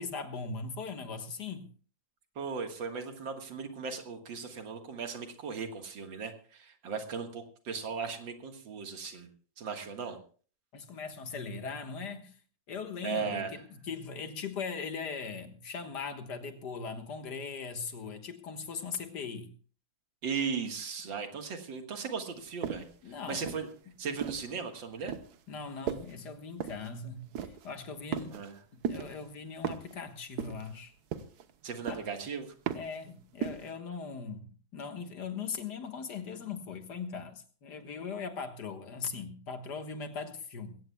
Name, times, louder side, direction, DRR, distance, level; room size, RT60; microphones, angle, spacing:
voice 1, 0.0-1.7 10.7-12.4 12.7-19.5 23.0-23.6 25.5-28.4 28.9-30.9 31.9-32.0 32.7-40.8, left 5 dB, 65° left, 2.0 m, -40 dB
voice 2, 2.4-9.3 9.6-10.2 13.0-13.5 20.2-23.7 24.0-25.1 28.3-28.5 31.6-32.5, right 5 dB, 85° right, 2.3 m, -37 dB
sound 1, 22.6-23.0 23.5-24.5 25.1-25.4 25.9-26.2 26.6-26.9 27.3-27.7 28.1-28.6 28.8-29.2 29.6-30.0 30.4-30.8 31.1-31.5 31.9-32.2 32.7-33.0 33.4-33.7, right 8 dB, 60° right, 1.4 m, -36 dB
21.5 x 17.0 x 2.3 m
omnidirectional pair, 2.0 m